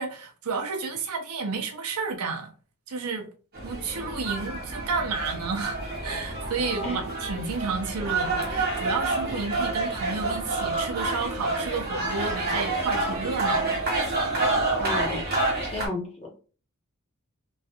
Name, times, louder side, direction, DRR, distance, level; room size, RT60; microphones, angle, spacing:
voice 1, 0.0-2.5 2.9-3.3 3.6-13.8, right 4 dB, 85° right, 0.7 m, -31 dB
sound 1, 3.5-15.9, right 2 dB, 45° right, 1.0 m, -28 dB
voice 2, 14.8-15.3 15.6-16.3, left 1 dB, 25° left, 0.9 m, -32 dB
3.1 x 2.4 x 2.8 m
head